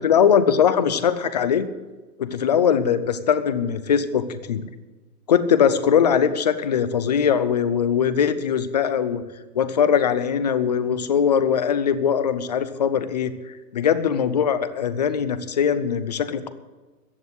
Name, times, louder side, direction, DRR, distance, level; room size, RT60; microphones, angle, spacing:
voice 1, 0.0-1.7 2.2-4.7 5.3-9.2 9.5-16.5, left 7 dB, 25° left, 13 dB, 0.5 m, -21 dB
14.5 x 8.0 x 8.1 m, 1.2 s
hypercardioid pair, 165°, 48 cm